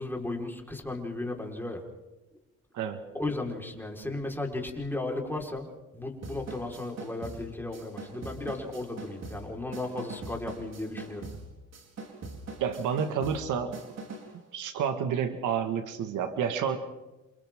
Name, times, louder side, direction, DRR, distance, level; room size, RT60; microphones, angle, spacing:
voice 1, 0.0-1.8 3.1-5.7 5.9-11.2, left 2 dB, 5° left, 1 dB, 4.7 m, -35 dB
sound 1, 6.2-14.4, right 3 dB, 60° right, 4.4 m, -43 dB
voice 2, 12.6-13.7 14.5-16.8, right 7 dB, 80° right, 8 dB, 1.9 m, -29 dB
29.0 x 28.0 x 3.8 m, 1.0 s
cardioid pair, 90°, 30 cm